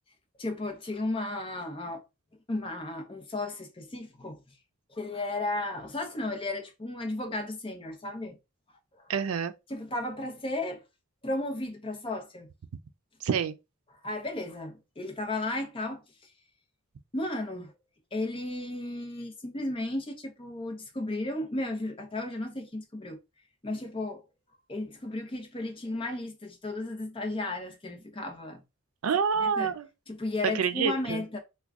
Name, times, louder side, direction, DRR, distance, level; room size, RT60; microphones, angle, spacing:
voice 1, 0.4-2.0 2.5-4.4 4.9-8.4 8.9-9.1 9.7-10.8 11.2-12.5 14.0-16.3 17.1-17.7 18.1-23.2 23.6-24.2 24.7-28.6 29.4-29.7 30.1-31.4, left 2 dB, 25° left, 0.7 m, -34 dB
voice 2, 9.1-9.5 13.2-13.5 29.0-29.9 30.5-31.2, right 6 dB, 85° right, 0.4 m, -27 dB
3.5 x 2.2 x 3.5 m
head